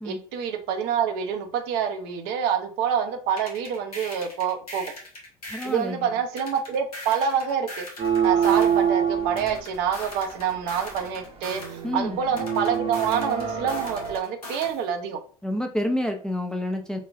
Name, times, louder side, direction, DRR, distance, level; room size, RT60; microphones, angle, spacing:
voice 1, 0.0-4.9 5.6-7.9 8.2-15.2, right 7 dB, 60° right, 5 dB, 0.6 m, -27 dB
sound 1, 3.4-5.8 6.4-8.8 9.4-11.8 12.4-14.8, left 1 dB, 90° left, 0.9 m, -40 dB
voice 2, 5.5-6.2 11.8-12.2 15.4-17.0, left 1 dB, 5° left, 3 dB, 0.4 m, -28 dB
sound 2, 8.0-14.2, right 8 dB, 30° right, 0.8 m, -26 dB
4.1 x 2.3 x 2.4 m, 0.43 s
figure-of-eight pair, 70°, 19 cm